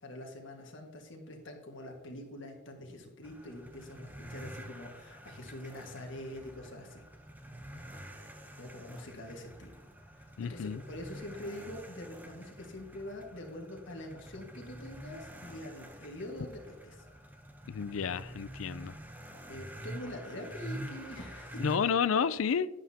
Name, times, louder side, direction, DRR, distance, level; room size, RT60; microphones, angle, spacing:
voice 1, 0.0-7.0 8.6-9.7 10.2-17.1 19.5-21.6, left 1 dB, 65° left, 1.8 m, -45 dB
sound 1, 3.2-21.8, right 1 dB, 10° right, 0.8 m, -47 dB
voice 2, 10.4-10.8 17.7-19.0 21.6-22.7, left 6 dB, 90° left, 0.4 m, -30 dB
11.0 x 9.7 x 2.8 m
head